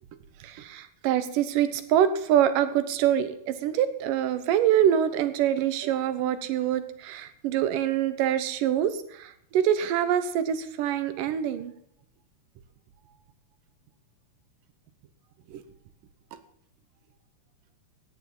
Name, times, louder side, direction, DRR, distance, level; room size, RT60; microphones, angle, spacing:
voice 1, 0.4-11.7 15.5-15.6, right 10 dB, 85° right, 11 dB, 2.7 m, -25 dB
15.5 x 9.5 x 5.6 m, 0.72 s
omnidirectional pair, 3.7 m